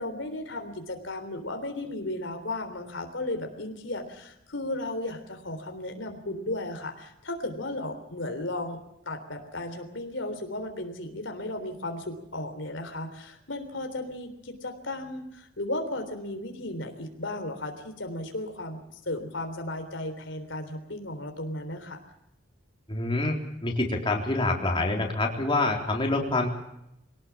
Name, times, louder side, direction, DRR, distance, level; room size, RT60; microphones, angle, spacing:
voice 1, 0.0-8.8 9.1-22.0, left 1 dB, 65° left, 6 dB, 3.6 m, -35 dB
voice 2, 22.9-23.4 23.6-26.5, left 2 dB, 25° left, 0 dB, 4.0 m, -26 dB
25.0 x 18.5 x 7.4 m, 0.81 s
head